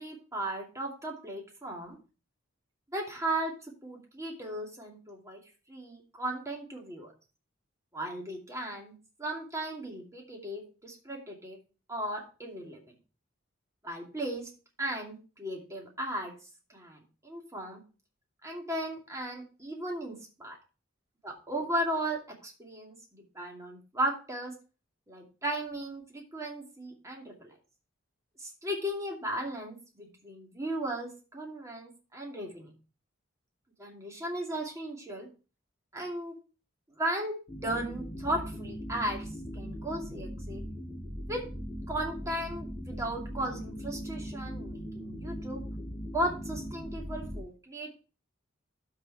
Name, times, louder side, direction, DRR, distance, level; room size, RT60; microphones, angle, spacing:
voice 1, 0.0-2.0 2.9-3.6 3.8-5.4 5.7-7.1 7.9-11.6 11.9-12.8 13.8-14.5 14.8-16.3 16.7-17.8 18.4-20.6 21.2-24.5 25.1-27.5 28.4-32.7 33.8-35.3 35.9-36.4 37.0-37.4 37.6-39.3 39.5-40.6 41.3-41.4 41.9-45.6 46.1-48.0, right 1 dB, 15° right, -1 dB, 2.5 m, -36 dB
sound 1, 37.5-47.4, equal, 25° left, 5.1 m, -39 dB
12.5 x 4.9 x 4.6 m, 0.34 s
head